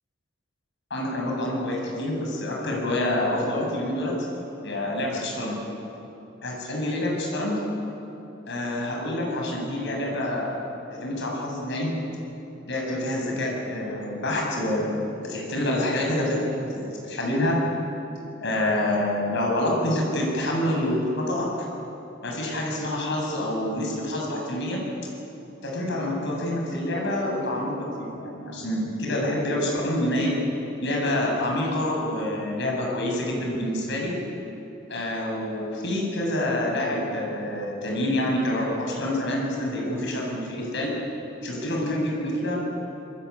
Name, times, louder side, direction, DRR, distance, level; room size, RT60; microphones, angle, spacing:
voice 1, 0.9-4.3 4.6-5.6 6.4-7.7 8.5-10.5 10.9-11.9 12.7-16.4 16.7-17.6 18.4-21.7 22.2-24.8 25.6-30.3 30.8-34.1 34.9-40.9 41.4-42.6, left 1 dB, 65° left, -1 dB, 7.9 m, -27 dB
28.0 x 21.0 x 8.6 m, 3.0 s
head